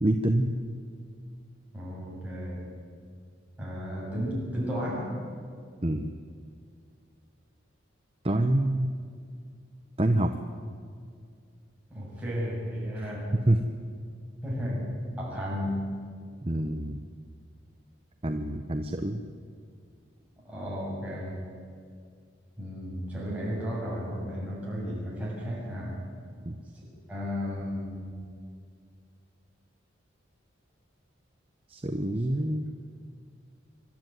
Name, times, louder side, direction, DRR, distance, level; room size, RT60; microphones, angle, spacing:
voice 1, 0.0-0.5 5.8-6.1 8.2-8.9 10.0-10.3 13.3-13.6 16.4-17.0 18.2-19.2 26.5-26.6 31.7-32.7, right 1 dB, 30° right, 6 dB, 0.9 m, -26 dB
voice 2, 1.7-2.6 3.6-5.2 11.9-13.3 14.4-15.9 20.4-21.4 22.6-26.0 26.8-28.0 32.3-32.4, equal, 5° right, -6 dB, 7.6 m, -33 dB
26.0 x 12.5 x 9.4 m, 2.2 s
head